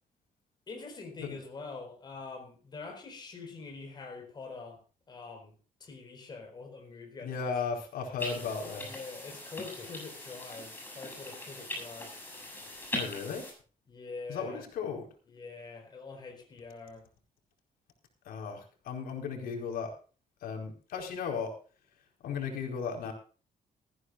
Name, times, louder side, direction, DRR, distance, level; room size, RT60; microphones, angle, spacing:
voice 1, 0.7-4.8 5.1-7.4 8.8-12.2 13.9-14.6 15.3-17.1, left 4 dB, 30° left, 3 dB, 4.5 m, -45 dB
voice 2, 7.2-9.0 12.9-13.5 14.3-15.1 18.2-19.9 20.4-21.5 22.2-23.1, left 6 dB, 85° left, 2 dB, 4.5 m, -35 dB
sound 1, 8.2-13.5, left 1 dB, 15° left, 6.9 m, -41 dB
19.5 x 14.5 x 2.5 m, 0.37 s
cardioid pair, 175°, 15 cm